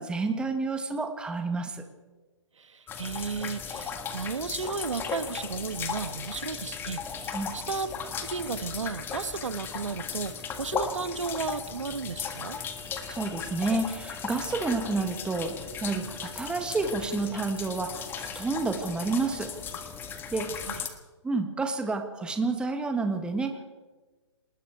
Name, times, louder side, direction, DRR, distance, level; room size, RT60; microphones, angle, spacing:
voice 1, 0.0-1.8 7.3-7.6 13.1-19.5 20.3-20.5 21.2-23.7, right 3 dB, 5° right, 6 dB, 1.6 m, -30 dB
voice 2, 2.6-7.9 8.2-10.3 10.6-12.6 20.7-20.8, right 5 dB, 90° right, 12 dB, 1.5 m, -34 dB
sound 1, 2.9-20.9, left 6 dB, 15° left, 1.6 m, -37 dB
sound 2, 12.6-20.1, left 2 dB, 50° left, 5.3 m, -56 dB
27.5 x 20.0 x 4.7 m, 1.2 s
hypercardioid pair, 150°, 15 cm